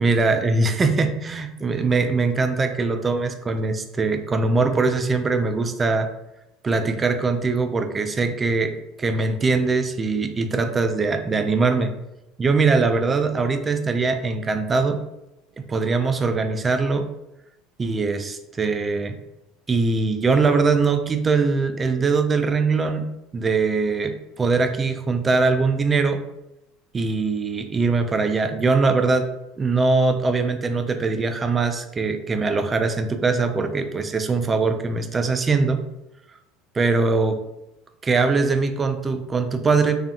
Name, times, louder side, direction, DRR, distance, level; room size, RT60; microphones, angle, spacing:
voice 1, 0.0-6.1 6.6-8.7 9.0-11.9 12.4-15.0 15.7-17.1 17.8-19.1 19.7-23.1 23.3-26.2 26.9-29.3 29.6-35.8 36.7-37.4 38.0-40.0, right 4 dB, 25° right, 7 dB, 0.3 m, -22 dB
2.6 x 2.4 x 2.4 m, 0.88 s
hypercardioid pair, 75°, 0 cm